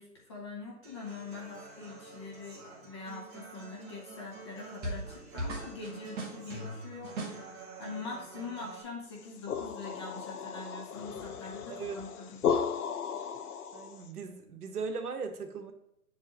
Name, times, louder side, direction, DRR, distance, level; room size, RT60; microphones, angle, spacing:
voice 1, 0.0-7.5 7.8-12.4, left 3 dB, 20° left, -1 dB, 0.7 m, -43 dB
Human voice / Acoustic guitar, 0.8-8.8, right 4 dB, 30° right, 1.7 m, -49 dB
sound 1, 4.8-5.1 5.4-7.5, right 1 dB, 15° right, 0.9 m, -38 dB
sound 2, 9.1-14.1, left 7 dB, 70° left, 0.7 m, -35 dB
voice 2, 13.7-15.7, right 5 dB, 75° right, 6 dB, 1.2 m, -38 dB
7.6 x 4.6 x 2.9 m, 0.81 s
hypercardioid pair, 155°, 46 cm